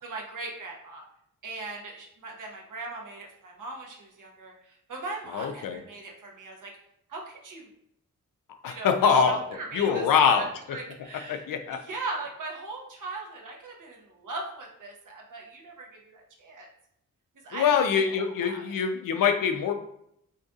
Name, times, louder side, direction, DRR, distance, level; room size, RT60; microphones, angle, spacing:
voice 1, 0.0-1.0 1.4-6.7 7.1-7.7 8.6-16.7 17.4-17.8 18.1-18.8, right 3 dB, 70° right, 0 dB, 1.1 m, -39 dB
voice 2, 5.3-5.8 8.6-9.4 9.7-10.8 11.3-11.8 17.5-19.7, left 6 dB, 90° left, 7 dB, 0.5 m, -24 dB
6.4 x 2.7 x 2.4 m, 0.75 s
wide cardioid pair, 105°, 32 cm